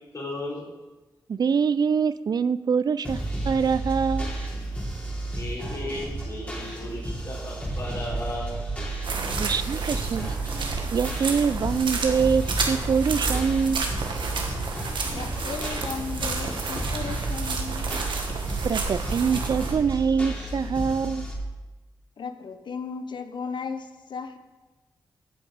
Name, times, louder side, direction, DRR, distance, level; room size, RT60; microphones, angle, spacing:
voice 1, 0.1-0.7 5.3-8.6 9.5-10.1 10.4-10.5, left 1 dB, 40° left, -4 dB, 4.1 m, -36 dB
voice 2, 1.3-4.3 9.4-10.3 10.9-13.9 18.6-21.3, right 6 dB, 55° right, 15 dB, 0.4 m, -24 dB
sound 1, 3.0-21.3, right 2 dB, 15° left, 3.1 m, -32 dB
sound 2, 9.0-19.7, right 4 dB, 75° right, 1.4 m, -31 dB
voice 3, 15.1-18.1 22.2-24.4, left 5 dB, 70° left, 9 dB, 0.8 m, -35 dB
15.0 x 5.3 x 5.0 m, 1.2 s
cardioid pair, 60°, 8 cm